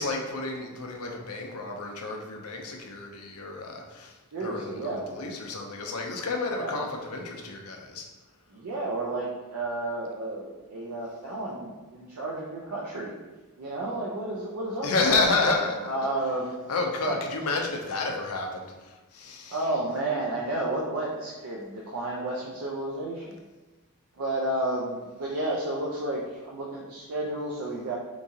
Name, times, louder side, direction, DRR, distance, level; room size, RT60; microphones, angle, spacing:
voice 1, 0.0-8.0 14.8-15.9 16.7-19.6, left 3 dB, 85° left, 1 dB, 0.6 m, -30 dB
voice 2, 4.3-5.1 6.6-6.8 8.5-13.1 13.6-15.3 15.8-16.5 17.0-17.2 19.5-23.4 24.2-28.0, right 2 dB, 90° right, -4 dB, 0.5 m, -31 dB
3.6 x 3.0 x 2.7 m, 1.2 s
head